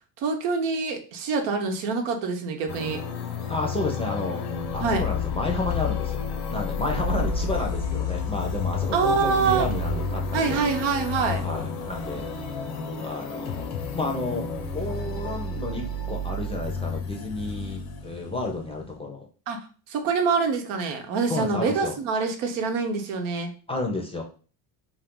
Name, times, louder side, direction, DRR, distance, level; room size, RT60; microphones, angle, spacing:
voice 1, 0.2-3.0 4.8-5.0 8.9-9.7 10.3-11.4 19.5-19.6 19.9-23.5, right 4 dB, 90° right, 5 dB, 0.8 m, -25 dB
sound 1, 2.7-19.0, left 4 dB, 85° left, 0.9 m, -30 dB
voice 2, 3.5-4.4 4.7-10.6 11.4-12.3 13.0-14.5 14.7-19.3 21.3-21.9 23.7-24.2, left 2 dB, 15° left, 1 dB, 0.4 m, -31 dB
2.6 x 2.4 x 3.6 m, 0.39 s
cardioid pair, 120°, 48 cm